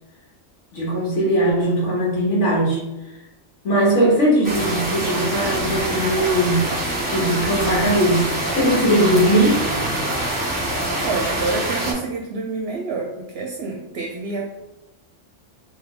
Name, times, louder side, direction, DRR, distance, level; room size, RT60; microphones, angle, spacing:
voice 1, 0.7-2.8 3.6-6.7 7.1-9.6, right 1 dB, 80° left, -4 dB, 1.4 m, -19 dB
sound 1, 4.4-11.9, right 1 dB, 10° right, 1.3 m, -25 dB
voice 2, 11.0-14.6, right 3 dB, 65° right, 0 dB, 0.8 m, -27 dB
3.3 x 2.8 x 3.6 m, 0.98 s
omnidirectional pair, 1.2 m